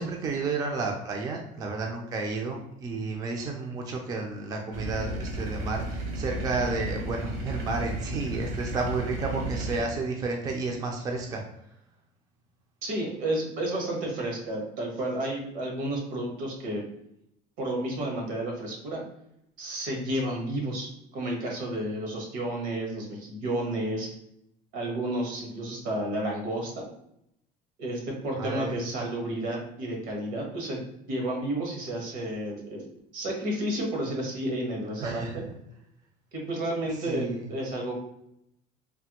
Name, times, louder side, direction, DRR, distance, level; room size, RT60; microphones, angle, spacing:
voice 1, 0.0-11.4 28.4-28.8 35.0-35.4 37.0-37.5, right 3 dB, 20° right, 1 dB, 0.4 m, -31 dB
sound 1, 4.7-9.8, right 1 dB, 65° right, 0.8 m, -34 dB
voice 2, 12.8-16.9 17.6-19.0 19.6-24.1 24.7-26.9 27.8-35.4 36.3-37.9, right 1 dB, 80° right, -1 dB, 1.2 m, -31 dB
3.3 x 2.1 x 2.9 m, 0.77 s
cardioid pair, 150°, 18 cm